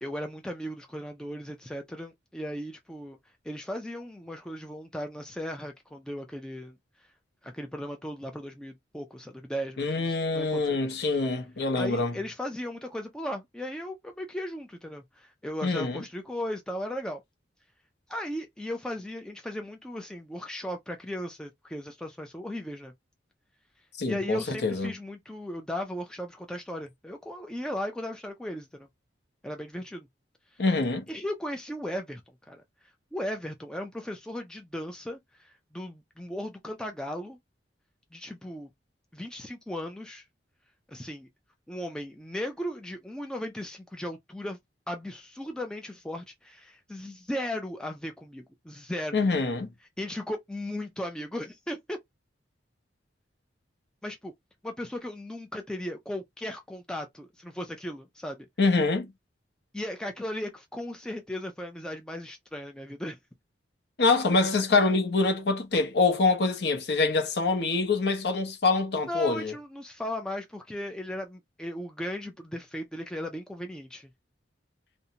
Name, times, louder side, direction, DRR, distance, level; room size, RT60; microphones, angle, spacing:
voice 1, 0.0-3.2 3.4-6.8 7.4-10.8 11.8-17.2 18.1-22.9 24.1-28.9 29.4-30.1 31.1-32.2 32.5-32.6 33.1-37.4 38.1-38.7 39.1-40.2 40.9-41.3 41.7-44.6 44.9-49.4 50.0-52.0 54.0-54.3 54.6-58.5 59.7-63.2 69.1-74.1, left 1 dB, 5° left, 0.3 m, -36 dB
voice 2, 9.8-12.1 15.6-16.0 24.0-24.9 30.6-31.0 49.1-49.7 58.6-59.1 64.0-69.5, left 3 dB, 60° left, 0.7 m, -25 dB
2.6 x 2.1 x 2.7 m
head